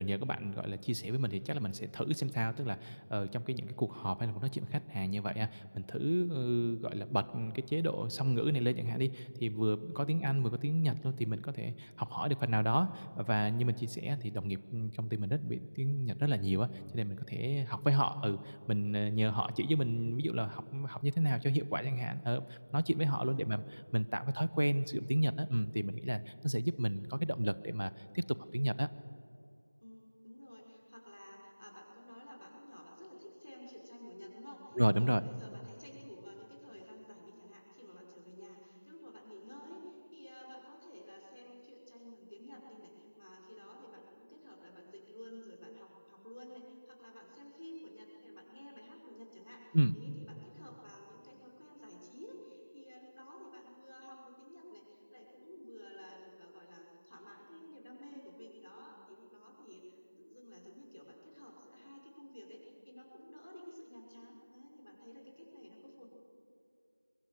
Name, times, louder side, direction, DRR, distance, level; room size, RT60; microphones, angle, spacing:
voice 1, 0.0-16.7 16.9-23.6 23.9-28.9 34.8-35.3 49.7-49.9, equal, 85° right, 16 dB, 0.9 m, -33 dB
voice 2, 23.1-23.5 29.8-66.1, equal, 50° left, -1 dB, 5.6 m, -52 dB
23.0 x 22.5 x 6.7 m, 2.6 s
figure-of-eight pair, 180°, 0 cm